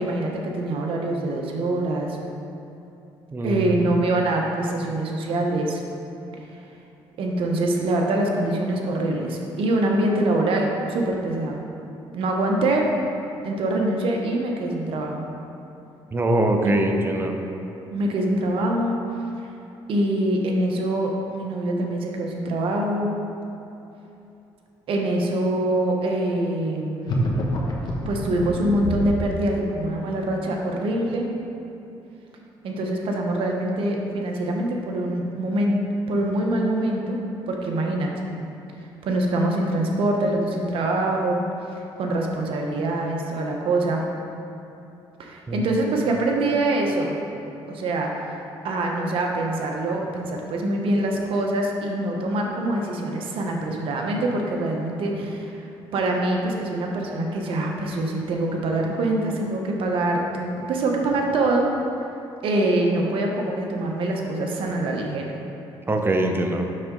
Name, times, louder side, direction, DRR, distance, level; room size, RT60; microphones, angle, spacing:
voice 1, 0.0-2.2 3.4-5.8 7.2-11.6 12.1-12.9 13.4-15.3 16.6-16.7 17.9-19.0 19.9-23.1 24.9-27.2 28.1-31.3 32.6-35.8 36.1-37.2 37.5-38.1 39.0-41.4 42.0-44.1 45.2-47.2 47.7-55.6 55.9-61.7 62.4-65.3, right 1 dB, 65° right, 1 dB, 1.1 m, -24 dB
voice 2, 3.3-3.6 16.1-17.3 45.5-45.6 65.9-66.7, right 1 dB, 25° right, 4 dB, 0.8 m, -22 dB
sound 1, 27.0-29.3, equal, 50° left, 1.3 m, -26 dB
7.7 x 6.5 x 3.9 m, 2.8 s
cardioid pair, 90°, 10 cm